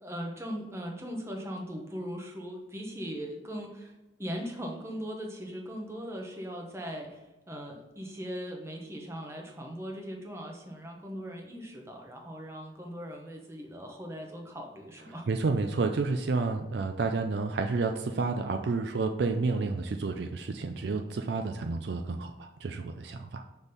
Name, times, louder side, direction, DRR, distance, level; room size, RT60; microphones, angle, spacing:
voice 1, 0.0-3.9 4.2-7.2 7.5-15.3, equal, 15° right, 1 dB, 0.9 m, -39 dB
voice 2, 15.3-23.4, right 3 dB, 60° right, 5 dB, 0.4 m, -30 dB
6.2 x 3.5 x 5.5 m, 1.1 s
head